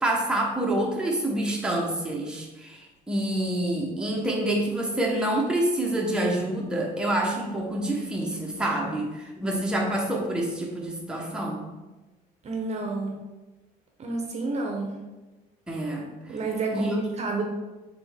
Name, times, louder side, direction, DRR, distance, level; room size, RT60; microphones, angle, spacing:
voice 1, 0.0-11.7 15.7-16.4 16.7-17.0, right 1 dB, 5° right, -2 dB, 0.9 m, -27 dB
voice 2, 12.4-13.2 14.0-14.9 16.3-17.4, right 3 dB, 40° right, 2 dB, 0.7 m, -30 dB
4.1 x 3.6 x 3.5 m, 1.1 s
cardioid pair, 110°, 17 cm